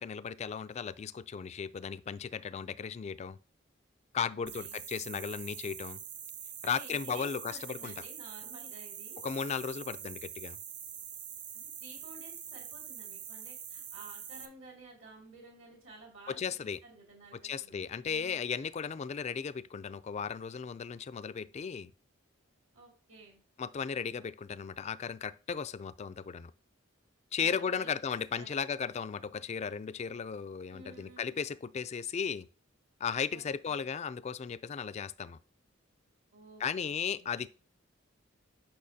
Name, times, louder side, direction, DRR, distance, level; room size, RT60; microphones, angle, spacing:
voice 1, 0.0-3.4 4.1-6.0 6.6-7.9 9.2-10.6 16.3-16.8 17.4-21.9 23.6-26.5 27.3-32.5 33.0-35.4 36.6-37.5, left 6 dB, 35° left, 0.3 m, -36 dB
voice 2, 4.2-4.8 6.6-9.2 11.8-18.4 22.7-23.4 27.4-28.7 30.7-31.5 33.3-33.9 36.3-36.9 37.2-37.3, right 2 dB, 70° right, 2.4 m, -53 dB
sound 1, 4.5-14.5, right 8 dB, 40° right, 0.7 m, -45 dB
8.6 x 5.7 x 2.7 m
head